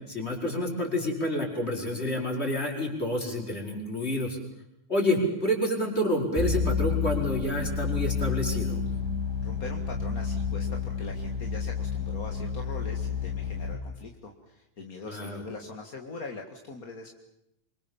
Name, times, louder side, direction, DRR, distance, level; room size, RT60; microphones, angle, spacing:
voice 1, 0.1-4.4 4.9-8.8 15.0-15.4, left 1 dB, 15° left, 0 dB, 6.0 m, -28 dB
sound 1, 6.4-13.7, left 5 dB, 10° right, 2.2 m, -30 dB
voice 2, 9.4-17.1, left 3 dB, 30° left, 3 dB, 1.8 m, -42 dB
28.0 x 25.0 x 7.3 m, 0.83 s
omnidirectional pair, 4.1 m